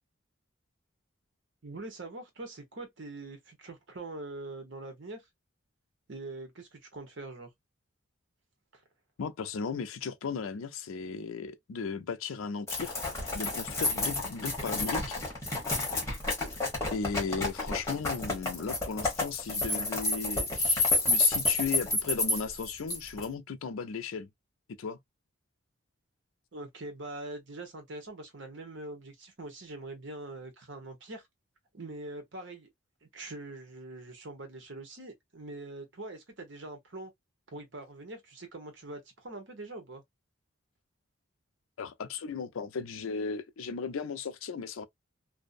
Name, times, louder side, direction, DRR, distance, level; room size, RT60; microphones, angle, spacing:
voice 1, 1.6-5.2 6.1-7.5 8.7-8.8 26.5-31.2 31.7-32.7 33.0-37.1 37.5-40.0, right 2 dB, 60° right, 0.9 m, -43 dB
voice 2, 9.2-13.0 13.3-15.2 16.9-24.3 24.8-25.0 41.8-44.8, left 5 dB, 80° left, 0.4 m, -36 dB
sound 1, 12.7-23.2, left 2 dB, 15° left, 1.1 m, -29 dB
2.6 x 2.1 x 2.4 m
head